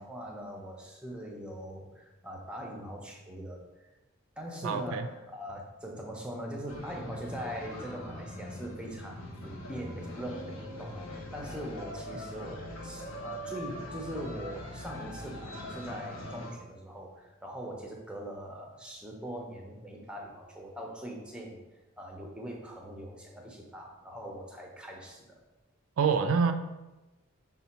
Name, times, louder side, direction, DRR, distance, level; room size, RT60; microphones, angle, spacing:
voice 1, 0.0-3.6 4.4-21.6 22.0-25.4, equal, 5° right, 1 dB, 0.5 m, -41 dB
voice 2, 4.6-5.1 26.0-26.5, right 5 dB, 70° right, 8 dB, 0.3 m, -26 dB
sound 1, 6.7-16.5, left 1 dB, 65° left, 0.8 m, -42 dB
5.4 x 2.2 x 4.1 m, 1.1 s
head